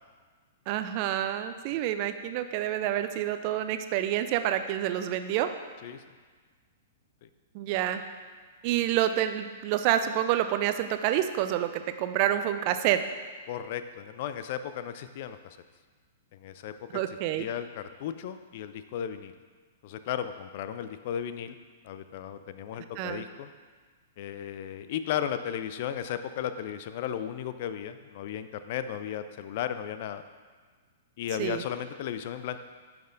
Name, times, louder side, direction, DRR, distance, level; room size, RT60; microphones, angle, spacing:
voice 1, 0.7-5.5 7.5-8.0 8.6-13.0 16.9-17.5 23.0-23.2 31.4-31.6, right 12 dB, 40° right, 10 dB, 0.4 m, -28 dB
voice 2, 13.5-15.6 16.3-19.3 19.8-21.6 21.8-23.5 24.2-30.2 31.2-32.6, left 9 dB, 50° left, 11 dB, 0.4 m, -35 dB
10.0 x 5.9 x 2.6 m, 1.5 s
figure-of-eight pair, 105°, 0 cm